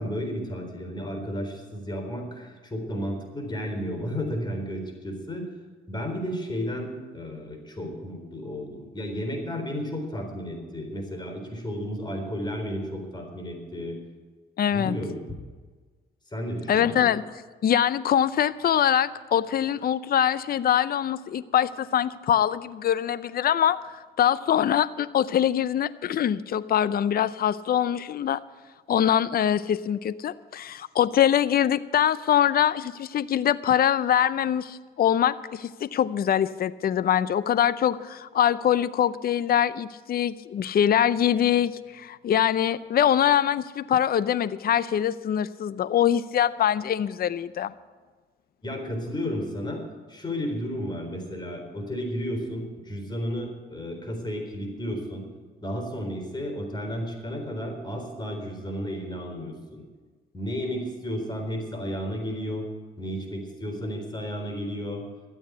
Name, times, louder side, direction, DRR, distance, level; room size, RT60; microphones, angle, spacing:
voice 1, 0.0-5.5 5.9-14.0 14.7-15.2 16.3-17.1 48.6-49.8 50.1-55.3 55.6-59.8 60.3-62.7 63.0-65.0, equal, 20° left, 3 dB, 4.0 m, -33 dB
voice 2, 14.6-15.0 16.7-17.2 17.6-23.8 24.2-28.4 28.9-47.7, left 10 dB, 50° left, 16 dB, 0.6 m, -23 dB
13.0 x 8.9 x 8.2 m, 1.4 s
cardioid pair, 90°, 20 cm